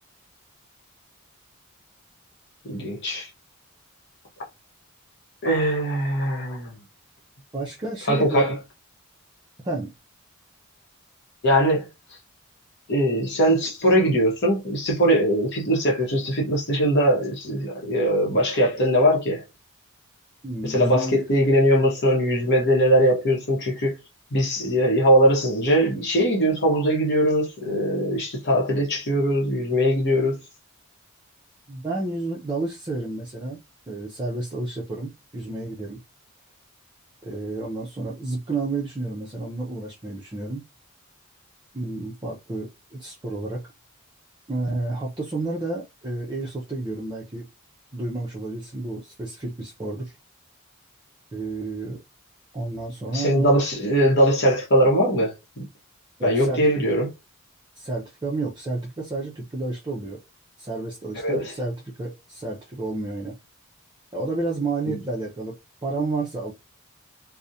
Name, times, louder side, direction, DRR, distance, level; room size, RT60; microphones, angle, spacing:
voice 1, 2.6-3.3 5.4-6.8 8.1-8.5 11.4-11.9 12.9-19.4 20.6-23.9 24.3-30.4 53.1-55.6 56.2-57.1 61.2-61.5 64.8-65.0, equal, 50° left, 0.8 m, -21 dB
voice 2, 7.5-8.6 9.6-9.9 20.4-21.2 31.7-33.6 33.9-36.0 37.2-40.6 41.7-43.7 44.5-47.5 47.9-50.1 51.3-52.0 52.5-53.6 56.2-56.6 57.8-60.2 60.6-63.4 64.1-65.6 65.8-66.5, right 2 dB, 20° right, 0.4 m, -30 dB
2.4 x 2.0 x 2.7 m
head